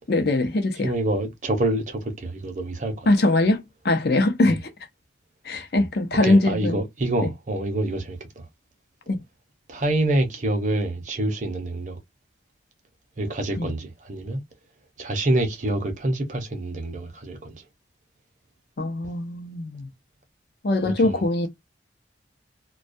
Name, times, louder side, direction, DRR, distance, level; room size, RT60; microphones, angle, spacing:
voice 1, 0.1-0.9 3.1-4.6 5.5-6.8 9.1-9.2 13.6-13.7 18.8-19.9 20.6-21.5, left 2 dB, 55° left, 0.5 m, -22 dB
voice 2, 0.8-3.1 4.4-4.6 6.2-8.5 9.7-12.0 13.2-14.4 15.0-17.6 20.8-21.5, right 1 dB, 40° right, 0.7 m, -27 dB
2.2 x 2.2 x 2.5 m
head